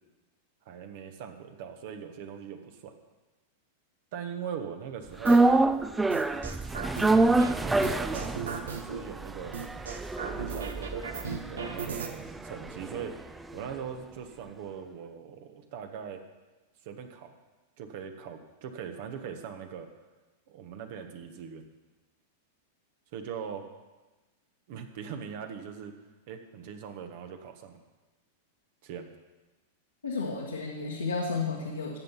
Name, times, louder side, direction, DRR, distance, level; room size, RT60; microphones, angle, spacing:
voice 1, 0.6-2.9 4.1-5.5 6.7-9.5 10.2-13.1 13.5-16.2 16.8-17.3 17.8-19.9 20.5-21.6 23.1-23.6 24.7-26.0 26.3-27.8 28.8-29.1, right 7 dB, 55° right, 6 dB, 1.5 m, -41 dB
sound 1, 5.2-13.5 13.8-13.9, right 2 dB, 10° right, 0.5 m, -27 dB
sound 2, 5.3-5.6 6.1-7.5 7.8-9.0 9.5-12.1, right 6 dB, 75° right, 1.3 m, -36 dB
voice 2, 30.0-32.0, left 4 dB, 85° left, -3 dB, 1.8 m, -32 dB
14.5 x 8.1 x 5.8 m, 1.2 s
figure-of-eight pair, 95°, 0 cm